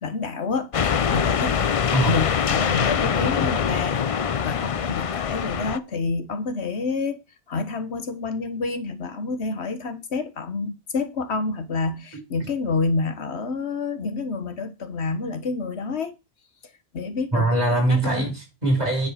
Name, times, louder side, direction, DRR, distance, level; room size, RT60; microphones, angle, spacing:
voice 1, 0.0-1.6 2.0-4.0 4.4-7.2 7.5-16.2 16.6-17.5 17.9-18.3, left 4 dB, 70° left, 1.4 m, -28 dB
sound 1, 0.7-5.8, left 7 dB, 45° left, 0.4 m, -23 dB
voice 2, 17.3-19.1, right 2 dB, 35° right, 5.0 m, -22 dB
9.9 x 5.0 x 5.8 m
omnidirectional pair, 1.1 m